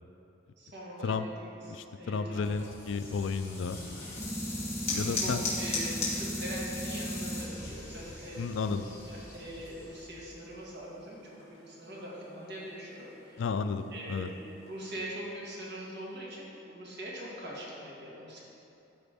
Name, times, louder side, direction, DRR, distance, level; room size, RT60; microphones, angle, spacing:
voice 1, 0.6-2.7 3.5-3.6 5.1-11.2 11.7-13.4 13.9-14.3 14.7-18.4, equal, 60° right, -5 dB, 2.0 m, -42 dB
voice 2, 1.6-3.8 4.9-5.4 8.4-8.9 13.4-14.3, left 5 dB, 80° left, 10 dB, 0.4 m, -32 dB
sound 1, 2.4-10.5, equal, 15° left, 2.0 m, -39 dB
sound 2, 3.8-15.0, left 3 dB, 30° left, 1.8 m, -41 dB
12.5 x 5.0 x 3.5 m, 2.8 s
head